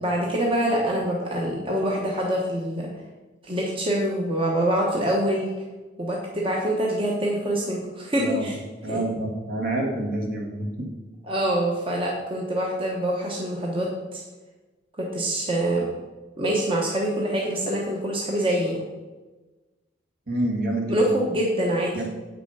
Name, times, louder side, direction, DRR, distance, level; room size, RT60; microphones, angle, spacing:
voice 1, 0.0-2.9 3.4-5.5 6.0-8.5 8.9-9.0 11.3-14.2 15.0-15.9 16.4-18.8 20.9-21.9, right 1 dB, 30° right, -2 dB, 1.1 m, -25 dB
voice 2, 8.2-8.5 8.8-10.9 20.3-21.0 21.9-22.1, right 1 dB, 55° right, 1 dB, 1.8 m, -27 dB
8.3 x 5.9 x 5.5 m, 1.2 s
head